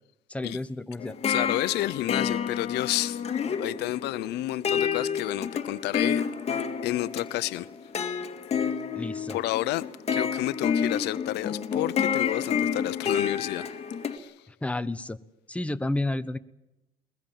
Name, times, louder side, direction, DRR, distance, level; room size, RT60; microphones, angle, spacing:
voice 1, 0.3-1.2 9.0-9.4 14.5-15.2 15.5-16.4, left 2 dB, 5° left, 1.1 m, -31 dB
sound 1, 1.0-14.2, left 7 dB, 40° left, 2.4 m, -29 dB
voice 2, 1.3-3.2 3.5-6.2 6.8-7.7 9.3-9.8 10.1-13.8 14.1-14.3, left 16 dB, 85° left, 0.8 m, -30 dB
22.0 x 22.0 x 7.5 m
cardioid pair, 110°, 17 cm